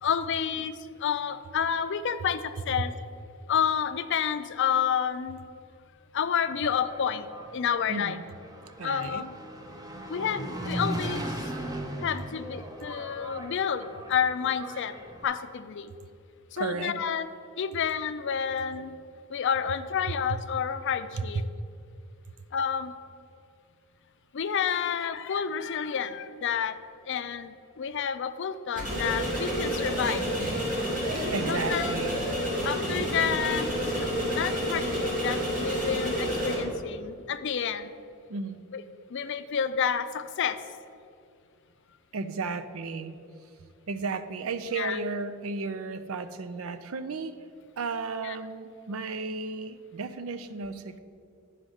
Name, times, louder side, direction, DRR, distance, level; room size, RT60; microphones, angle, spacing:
voice 1, 0.0-2.9 3.5-5.4 6.1-7.3 7.5-8.2 8.8-9.3 10.1-11.5 12.0-14.9 15.2-15.9 16.5-17.3 17.6-18.9 19.3-21.4 22.5-22.9 24.3-26.8 27.1-30.2 31.5-32.0 32.6-37.9 38.7-38.8 39.1-40.6 44.8-45.0 48.2-48.4, left 7 dB, 60° left, 11 dB, 0.4 m, -29 dB
Engine, 6.4-15.2, right 1 dB, 20° right, 0.8 m, -38 dB
voice 2, 7.9-8.2 8.8-9.3 16.6-17.0 31.3-32.2 38.3-38.6 42.1-43.2 43.9-47.4 47.8-51.0, right 4 dB, 75° right, 11 dB, 0.5 m, -34 dB
sound 1, 28.7-36.5, equal, 40° right, 2.5 m, -29 dB
9.8 x 5.0 x 6.4 m, 2.4 s
head